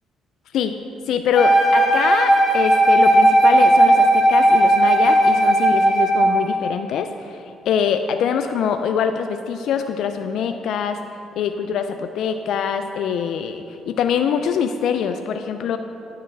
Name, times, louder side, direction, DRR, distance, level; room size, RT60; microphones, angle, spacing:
voice 1, 1.1-11.0 11.4-15.8, left 7 dB, 75° left, 7 dB, 0.3 m, -24 dB
Wind instrument woodwind instrument, 1.3-6.4, right 1 dB, 5° left, 1.7 m, -15 dB
10.0 x 6.7 x 3.2 m, 2.6 s
cardioid pair, 85°, 0 cm